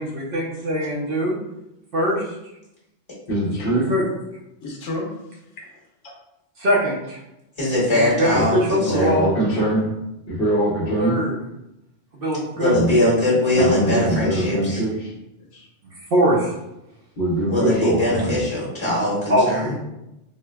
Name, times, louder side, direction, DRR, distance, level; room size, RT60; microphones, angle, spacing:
voice 1, 0.0-1.4 1.9-2.3 3.9-4.1 6.6-7.2 7.9-9.8 11.0-11.3 12.1-12.7 13.5-13.6 14.4-14.5 16.1-16.5 19.3-19.8, equal, 60° right, -4 dB, 0.8 m, -22 dB
voice 2, 3.3-3.9 8.3-8.4 8.9-9.9 10.3-11.2 12.7-13.0 13.6-15.1 17.2-18.4, right 1 dB, 55° left, -4 dB, 1.0 m, -22 dB
voice 3, 4.6-5.8 9.0-9.5 15.4-15.7, left 2 dB, 85° left, -2 dB, 1.1 m, -33 dB
voice 4, 7.6-9.1 12.6-14.8 17.5-19.7, left 1 dB, 25° left, -8 dB, 1.2 m, -21 dB
4.4 x 2.1 x 2.2 m, 0.90 s
omnidirectional pair, 1.2 m